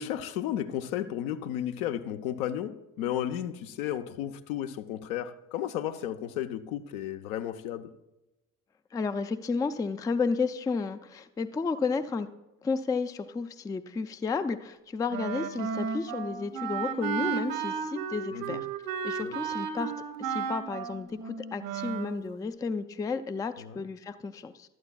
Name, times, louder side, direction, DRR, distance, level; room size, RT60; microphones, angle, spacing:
voice 1, 0.0-7.9 18.3-18.6 19.2-19.4 23.6-23.8, left 11 dB, 70° left, 0.8 m, -33 dB
voice 2, 8.9-12.3 12.6-18.7 19.0-19.9 20.2-24.7, left 4 dB, 10° left, 0.4 m, -32 dB
Wind instrument woodwind instrument, 15.1-22.2, right 6 dB, 65° right, 1.2 m, -34 dB
16.0 x 12.0 x 2.3 m
figure-of-eight pair, 55°, 45 cm